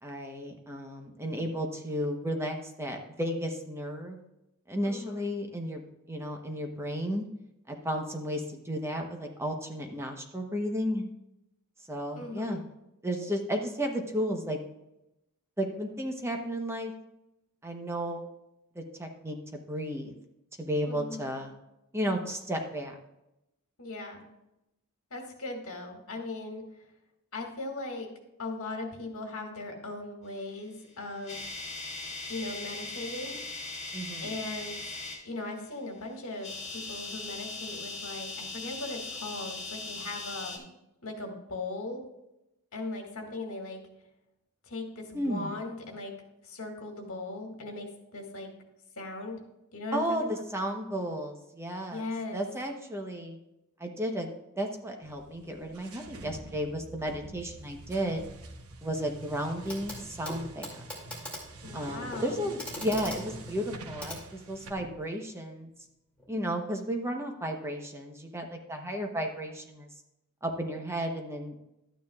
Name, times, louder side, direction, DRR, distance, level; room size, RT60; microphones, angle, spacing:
voice 1, 0.0-4.2 4.7-5.8 6.1-7.3 7.7-11.0 11.9-12.6 13.0-14.6 15.6-16.9 17.6-18.3 18.7-20.1 20.6-21.5 21.9-23.0 33.9-34.3 45.1-45.6 49.9-52.1 52.3-53.4 53.8-54.3 54.5-58.2 58.8-60.8 61.7-65.7 66.3-69.9 70.4-71.7, equal, 10° right, 3 dB, 1.0 m, -33 dB
voice 2, 4.8-5.3 12.1-12.6 20.9-21.4 23.8-24.3 25.1-26.6 27.3-28.1 28.4-31.4 32.3-33.4 34.2-34.8 35.2-40.7 41.0-42.0 42.7-43.8 44.7-46.1 46.4-48.5 49.0-49.4 49.7-50.4 51.9-52.4 61.6-62.4, left 2 dB, 65° left, 2 dB, 2.0 m, -38 dB
sound 1, 30.8-35.2 36.3-40.6, left 3 dB, 30° left, 1.9 m, -39 dB
sound 2, 55.0-64.7, right 2 dB, 75° right, 1.1 m, -47 dB
Clock, 59.7-60.0 60.2-64.9 66.2-66.3, left 1 dB, 5° left, 2.5 m, -42 dB
12.5 x 9.2 x 2.4 m, 0.89 s
head